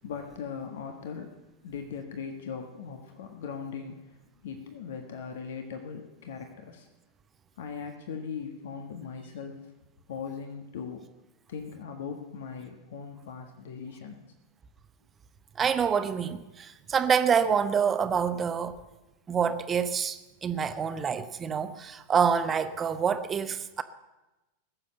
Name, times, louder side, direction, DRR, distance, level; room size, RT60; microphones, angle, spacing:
voice 1, 0.0-1.4 1.6-4.1 4.4-6.9 7.6-9.6 10.1-11.0 11.5-14.2, left 6 dB, 55° left, 1.5 m, -39 dB
voice 2, 15.6-18.8 19.3-23.8, right 7 dB, 20° right, 0.9 m, -27 dB
19.5 x 7.5 x 7.9 m
figure-of-eight pair, 90°, 0 cm